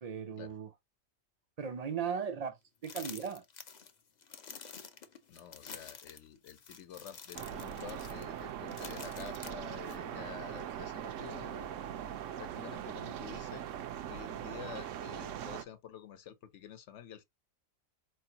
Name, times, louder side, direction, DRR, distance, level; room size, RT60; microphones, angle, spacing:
voice 1, 0.0-0.7 1.6-2.6 2.8-3.4, right 7 dB, 50° right, 0.4 m, -37 dB
sound 1, 2.8-10.0, left 6 dB, 45° left, 0.6 m, -49 dB
voice 2, 5.3-13.7 14.1-17.2, left 9 dB, 65° left, 1.0 m, -49 dB
sound 2, 7.3-15.6, right 10 dB, 75° right, 0.9 m, -41 dB
4.4 x 3.1 x 2.7 m
omnidirectional pair, 1.4 m